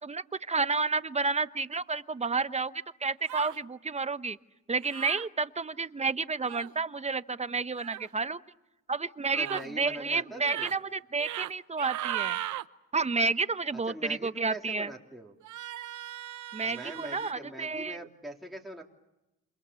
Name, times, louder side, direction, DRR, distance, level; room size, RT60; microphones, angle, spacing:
voice 1, 0.0-2.7 3.0-4.4 4.7-8.4 8.9-12.4 12.9-14.9 16.5-18.0, right 4 dB, 20° right, 13 dB, 1.0 m, -30 dB
sound 1, 3.3-3.6 4.9-5.3 6.4-6.7 7.8-8.1 9.3-9.7 10.3-10.8 11.2-11.5 11.8-12.7 15.4-17.3, right 13 dB, 75° right, 1.0 m, -37 dB
voice 2, 9.4-10.7 13.7-15.4 16.6-18.8, right 1 dB, ahead, -2 dB, 3.5 m, -42 dB
28.0 x 28.0 x 7.1 m, 0.95 s
cardioid pair, 90°, 30 cm